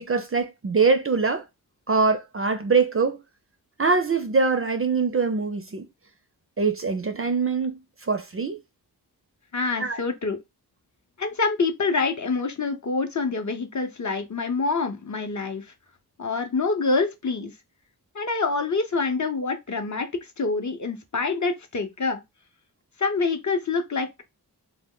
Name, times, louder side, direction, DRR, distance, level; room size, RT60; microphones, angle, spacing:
voice 1, 0.0-1.5 1.9-3.2 3.8-5.9 6.6-8.6 9.8-10.0, right 4 dB, 35° right, 0.4 m, -23 dB
voice 2, 9.5-10.4 11.2-15.7 16.2-17.5 18.1-22.2 23.0-24.2, left 4 dB, 45° left, 0.6 m, -26 dB
2.1 x 2.0 x 3.7 m
wide cardioid pair, 45°, 39 cm